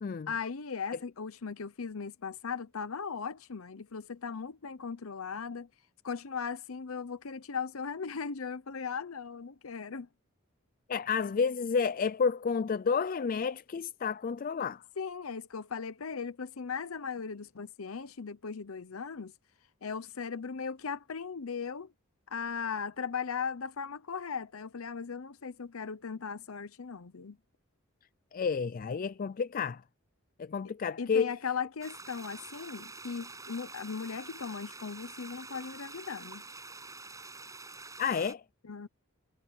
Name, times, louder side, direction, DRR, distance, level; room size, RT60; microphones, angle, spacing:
voice 1, 0.3-5.7 6.0-10.1 15.0-19.3 19.8-21.9 22.3-27.4 31.0-36.4 38.6-38.9, left 6 dB, 85° left, 0.8 m, -38 dB
voice 2, 10.9-14.8 28.3-29.8 30.4-31.3 38.0-38.4, left 5 dB, 40° left, 0.4 m, -30 dB
sound 1, 31.8-38.3, right 3 dB, 15° right, 6.9 m, -47 dB
head